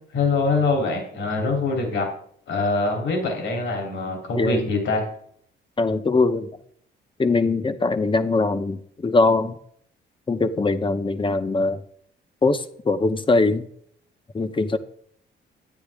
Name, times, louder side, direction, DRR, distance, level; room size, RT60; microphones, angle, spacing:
voice 1, 0.1-2.1 2.5-5.0, left 3 dB, 75° left, 2 dB, 3.2 m, -24 dB
voice 2, 4.4-4.7 5.8-6.5 7.2-9.6 10.3-11.8 12.4-13.6 14.3-14.8, left 3 dB, 25° left, 11 dB, 0.9 m, -21 dB
12.0 x 9.4 x 3.6 m, 0.63 s
cardioid pair, 90°, 20 cm